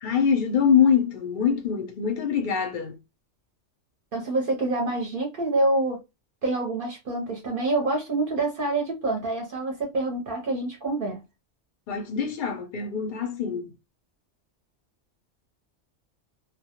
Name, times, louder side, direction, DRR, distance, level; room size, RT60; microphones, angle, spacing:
voice 1, 0.0-3.0 11.9-13.7, left 7 dB, 60° left, 0.5 m, -24 dB
voice 2, 4.1-6.0 6.4-11.2, right 2 dB, 55° right, 0.7 m, -26 dB
2.2 x 2.0 x 2.8 m
omnidirectional pair, 1.2 m